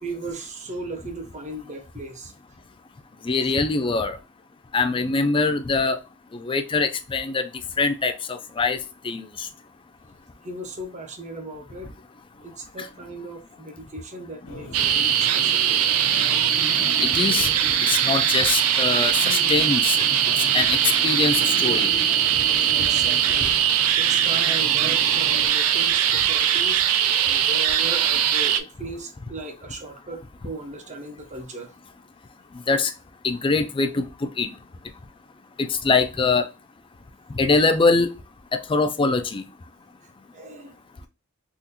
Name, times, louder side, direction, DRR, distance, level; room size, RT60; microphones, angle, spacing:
voice 1, 0.0-2.3 3.4-3.5 10.4-11.9 12.4-15.7 22.8-23.5 24.0-26.8 27.2-31.7 40.3-40.7, right 2 dB, 35° right, 0.7 m, -37 dB
voice 2, 3.2-4.2 4.7-6.0 6.3-7.4 7.8-8.8 9.0-9.5 12.8-12.9 17.0-17.5 17.8-20.1 20.5-20.8 21.0-21.9 32.7-32.9 33.2-34.5 35.6-36.4 37.3-38.1 38.5-39.4, left 4 dB, 25° left, 0.4 m, -23 dB
sound 1, 14.5-25.5, left 1 dB, 65° left, 0.7 m, -38 dB
sound 2, 14.7-28.6, right 9 dB, 75° right, 0.4 m, -21 dB
3.7 x 2.4 x 2.8 m
head